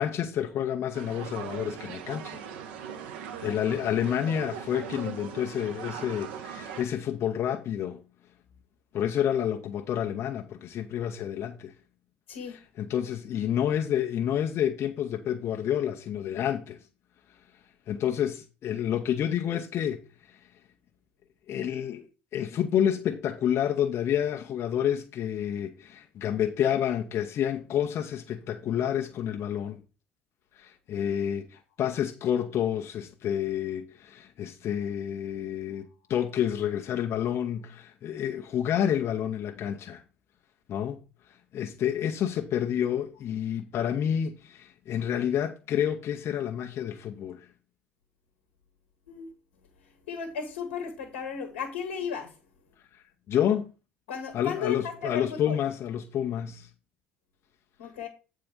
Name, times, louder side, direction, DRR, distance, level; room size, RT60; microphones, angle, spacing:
voice 1, 0.0-2.4 3.4-8.0 8.9-11.7 12.5-16.8 17.9-20.4 21.5-22.0 22.3-29.8 30.6-40.0 40.7-41.0 41.5-47.5 52.9-53.7 54.3-56.7, left 9 dB, 45° left, 0.8 m, -29 dB
sound 1, 0.9-6.8, right 8 dB, 65° right, 0.9 m, -40 dB
voice 2, 50.1-52.3 54.1-55.6 57.8-58.1, left 6 dB, 70° left, 1.2 m, -35 dB
8.6 x 3.7 x 6.8 m
figure-of-eight pair, 55°, 6 cm